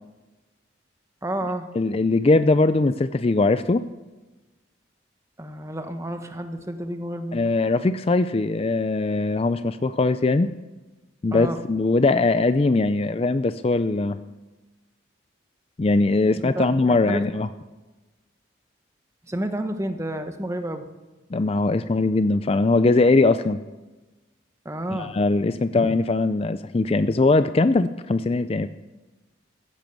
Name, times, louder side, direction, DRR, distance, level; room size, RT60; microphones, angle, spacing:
voice 1, 1.2-1.7 5.4-7.4 11.3-11.6 16.3-17.2 19.3-20.8 24.6-25.1, right 1 dB, 15° right, 7 dB, 1.1 m, -30 dB
voice 2, 1.8-3.8 7.3-10.5 11.2-14.2 15.8-17.5 21.3-23.6 24.9-28.7, left 3 dB, 30° left, 12 dB, 0.4 m, -21 dB
15.5 x 10.5 x 7.1 m, 1.1 s
head